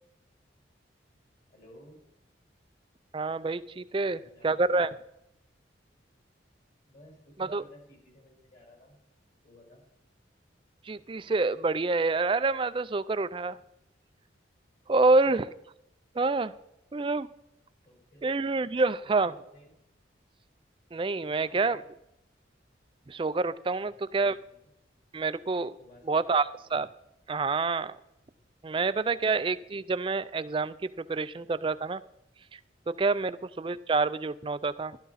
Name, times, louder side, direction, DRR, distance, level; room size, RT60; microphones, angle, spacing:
voice 1, 1.5-2.0 4.0-4.6 6.9-9.0 9.4-9.8 15.2-15.4 17.8-18.3 19.0-19.7 21.2-21.8 23.8-24.7 25.8-26.6 28.4-28.5 29.1-29.3 33.2-33.5, left 1 dB, 45° left, -2 dB, 5.1 m, -56 dB
voice 2, 3.1-4.9 7.4-7.6 10.8-13.6 14.9-15.5 16.1-16.5 16.9-17.3 18.2-19.3 20.9-21.8 23.1-24.4 25.1-25.7 26.0-26.9 27.3-28.0 28.6-32.0 32.5-32.6 32.9-35.0, right 3 dB, 25° right, 14 dB, 0.4 m, -27 dB
12.5 x 12.0 x 4.1 m, 0.83 s
head